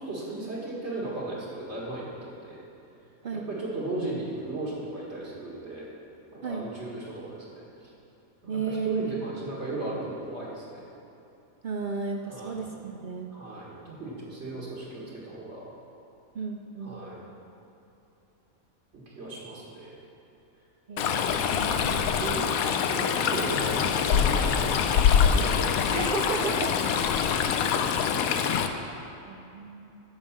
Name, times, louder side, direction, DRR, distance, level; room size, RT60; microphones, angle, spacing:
voice 1, 0.0-2.6 3.3-5.9 6.3-7.9 8.4-10.8 12.3-12.6 13.3-15.7 16.8-17.2 18.9-20.0 21.8-21.9 22.2-25.8 26.4-26.7, right 2 dB, 50° right, -6 dB, 2.0 m, -36 dB
voice 2, 8.5-9.2 11.6-13.3 16.3-17.1 20.9-22.0 25.9-26.7 29.3-30.0, right 5 dB, 85° right, 2 dB, 0.4 m, -34 dB
Stream, 21.0-28.7, left 7 dB, 80° left, 1.0 m, -24 dB
10.5 x 5.3 x 7.2 m, 2.9 s
omnidirectional pair, 1.5 m